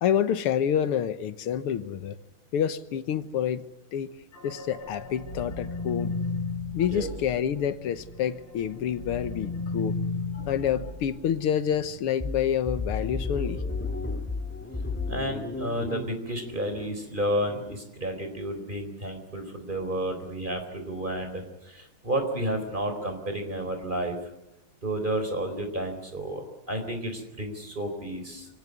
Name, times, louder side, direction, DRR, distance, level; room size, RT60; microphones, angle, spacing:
voice 1, 0.0-2.2 2.5-3.6 3.9-4.1 4.4-6.1 6.7-9.9 10.5-13.6, left 9 dB, 90° left, 12 dB, 2.0 m, -28 dB
sound 1, 4.3-8.2 8.6-12.0, left 2 dB, 25° left, 6.7 m, -35 dB
sound 2, 12.2-17.8, left 3 dB, 5° left, 2.0 m, -34 dB
voice 2, 15.1-24.2 24.8-28.5, right 1 dB, 20° right, 6 dB, 4.2 m, -31 dB
26.0 x 18.0 x 9.4 m, 0.93 s
omnidirectional pair, 2.4 m